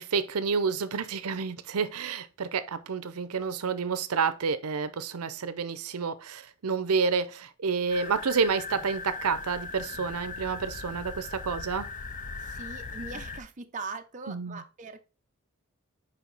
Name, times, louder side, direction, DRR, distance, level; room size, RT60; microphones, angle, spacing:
voice 1, 0.0-11.9 14.3-14.6, right 5 dB, 85° right, 0.6 m, -29 dB
sound 1, 7.9-13.4, left 4 dB, 35° left, 0.5 m, -39 dB
voice 2, 12.4-15.0, right 3 dB, 35° right, 0.6 m, -41 dB
5.0 x 4.9 x 3.9 m
head